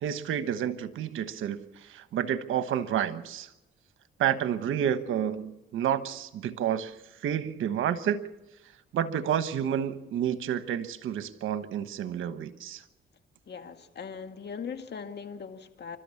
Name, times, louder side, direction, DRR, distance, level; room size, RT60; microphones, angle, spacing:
voice 1, 0.0-3.5 4.2-6.9 7.2-8.2 8.9-12.8, right 9 dB, 80° right, 12 dB, 1.2 m, -30 dB
voice 2, 13.5-16.0, left 6 dB, 55° left, 7 dB, 2.0 m, -40 dB
28.5 x 13.0 x 7.2 m, 0.99 s
cardioid pair, 70°, 20 cm